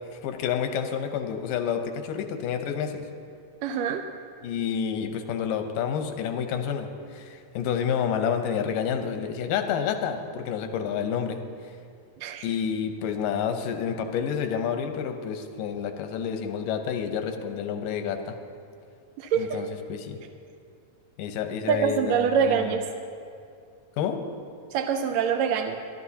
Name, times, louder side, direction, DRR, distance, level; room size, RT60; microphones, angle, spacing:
voice 1, 0.1-3.1 4.4-11.4 12.4-18.4 19.4-20.2 21.2-22.7 24.0-24.3, left 7 dB, 90° left, 7 dB, 2.5 m, -29 dB
voice 2, 3.6-4.1 12.2-12.4 19.2-19.6 21.7-22.8 24.7-25.8, right 7 dB, 80° right, 5 dB, 1.6 m, -25 dB
23.0 x 12.0 x 2.8 m, 2.3 s
omnidirectional pair, 3.7 m